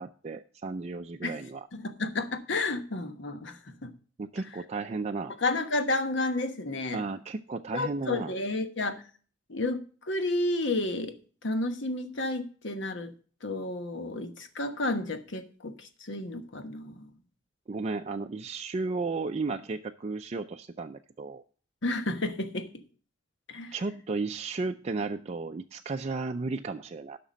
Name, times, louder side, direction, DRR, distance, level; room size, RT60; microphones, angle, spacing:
voice 1, 0.0-1.7 4.2-5.4 6.9-8.3 17.7-21.4 23.7-27.2, right 3 dB, 35° right, 5 dB, 0.4 m, -34 dB
voice 2, 1.7-3.9 5.4-7.0 7.7-9.0 9.5-11.1 11.4-13.1 13.4-17.1 21.8-22.8 23.5-23.7, left 2 dB, 65° left, 8 dB, 1.1 m, -31 dB
11.5 x 5.9 x 5.1 m, 0.41 s
head